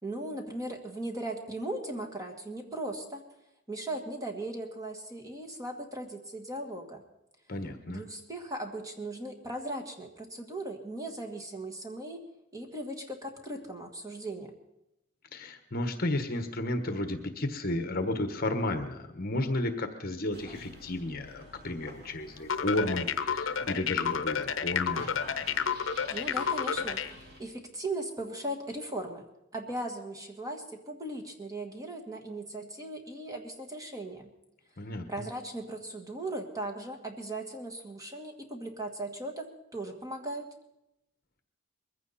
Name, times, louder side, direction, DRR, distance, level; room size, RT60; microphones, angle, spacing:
voice 1, 0.0-3.2 3.7-7.0 7.9-12.2 12.5-14.5 26.1-29.3 29.5-34.3 35.1-39.5 39.7-40.5, right 1 dB, 15° right, 3 dB, 1.7 m, -38 dB
voice 2, 7.5-8.0 15.3-25.1 34.8-35.0, left 1 dB, 45° left, 7 dB, 1.3 m, -32 dB
sound 1, 20.3-27.4, equal, 50° right, 3.3 m, -49 dB
sound 2, 22.5-27.1, left 7 dB, 65° left, 0.8 m, -30 dB
21.5 x 15.5 x 4.2 m, 0.87 s
head